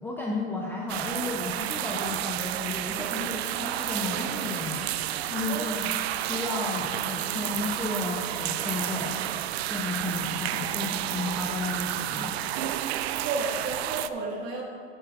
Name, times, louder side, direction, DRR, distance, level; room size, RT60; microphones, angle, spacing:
voice 1, 0.0-4.9 5.3-9.2 9.7-12.4, left 2 dB, 5° left, -3 dB, 0.6 m, -33 dB
sound 1, 0.9-14.1, right 13 dB, 70° right, 0.5 m, -31 dB
voice 2, 13.1-14.6, right 3 dB, 35° right, -3 dB, 2.0 m, -32 dB
13.5 x 7.7 x 2.5 m, 2.2 s
hypercardioid pair, 130°, 33 cm